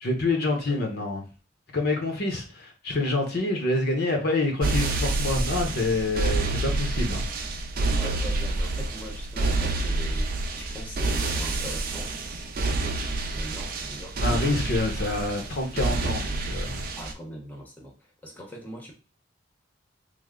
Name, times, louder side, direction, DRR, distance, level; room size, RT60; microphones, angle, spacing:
voice 1, 0.0-1.2 1.7-7.2 14.2-16.8, left 2 dB, 60° left, 3 dB, 0.8 m, -27 dB
voice 2, 0.7-1.1 7.9-12.1 13.3-14.2 17.0-18.9, left 1 dB, 10° left, -1 dB, 0.8 m, -42 dB
sound 1, 4.6-17.1, right 2 dB, 50° right, 0.5 m, -28 dB
3.2 x 2.0 x 3.6 m, 0.33 s
head